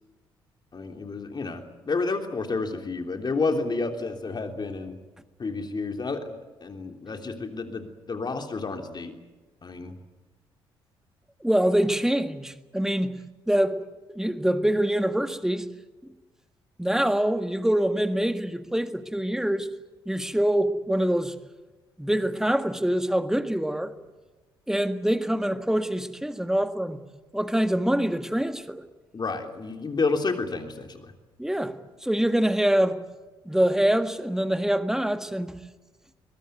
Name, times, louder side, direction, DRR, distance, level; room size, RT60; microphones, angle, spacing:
voice 1, 0.7-5.0 5.4-9.1 9.6-9.9 29.1-31.1, left 3 dB, 35° left, 3.3 m, -30 dB
voice 2, 11.4-13.1 13.5-13.8 14.1-15.7 16.8-19.7 20.0-21.3 22.0-23.9 24.7-27.0 27.3-28.8 31.4-33.0 33.4-35.6, right 1 dB, 5° right, 1.7 m, -25 dB
22.5 x 21.5 x 9.4 m
figure-of-eight pair, 45°, 13 cm